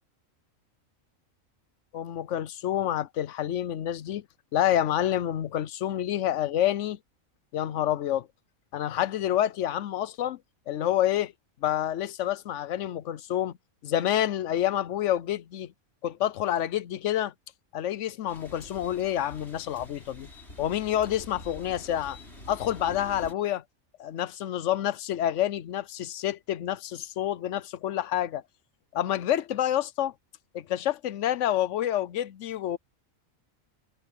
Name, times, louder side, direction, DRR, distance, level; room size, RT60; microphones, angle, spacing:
voice 1, 1.9-4.2 4.5-7.0 7.5-8.3 8.7-10.4 10.7-11.3 11.6-13.5 13.8-15.7 16.0-17.3 17.7-20.3 20.6-22.2 22.5-23.6 24.0-28.4 28.9-30.1 30.5-32.8, left 11 dB, 65° left, 0.9 m, -28 dB
sound 1, 18.3-23.3, left 1 dB, 50° left, 8.0 m, -46 dB
omnidirectional pair, 1.4 m